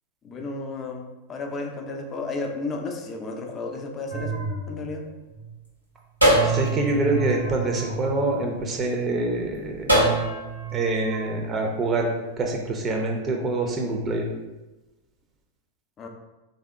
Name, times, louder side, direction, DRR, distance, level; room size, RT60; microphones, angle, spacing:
voice 1, 0.2-4.4 4.7-5.1 16.0-16.1, left 3 dB, 25° left, 3 dB, 0.6 m, -33 dB
sound 1, 4.1-5.5 6.2-8.7 9.9-11.3, right 2 dB, 90° right, 1.1 m, -25 dB
voice 2, 6.4-9.9 10.7-12.1 12.4-14.2, right 2 dB, 25° right, 1 dB, 0.6 m, -25 dB
3.5 x 2.7 x 3.6 m, 1.1 s
figure-of-eight pair, 90°, 0 cm